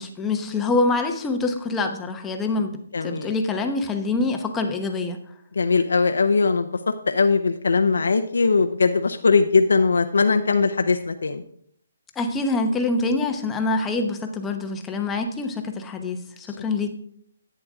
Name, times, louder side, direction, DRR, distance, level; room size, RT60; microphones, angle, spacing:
voice 1, 0.0-2.7 3.0-5.2 12.2-16.9, left 3 dB, 10° left, 4 dB, 1.0 m, -25 dB
voice 2, 2.9-3.3 5.6-11.4, left 4 dB, 85° left, 7 dB, 0.7 m, -20 dB
11.0 x 8.8 x 3.6 m, 0.64 s
hypercardioid pair, 160°, 0 cm